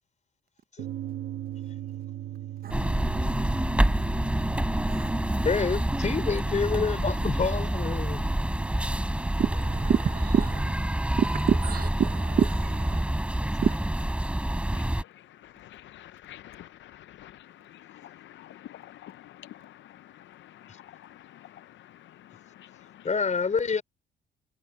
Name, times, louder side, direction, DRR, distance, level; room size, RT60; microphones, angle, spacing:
sound 1, 0.8-13.7, right 12 dB, 80° right, 1.6 m, -42 dB
sound 2, 2.7-15.0, right 1 dB, 5° right, 3.5 m, -27 dB
voice 1, 5.4-8.2 23.0-23.8, left 5 dB, 35° left, 4.4 m, -27 dB
voice 2, 9.4-10.7 11.2-13.0 13.6-13.7, right 8 dB, 50° right, 0.8 m, -27 dB
voice 3, 14.7-23.1, left 13 dB, 70° left, 0.6 m, -49 dB
cardioid pair, 90°, 20 cm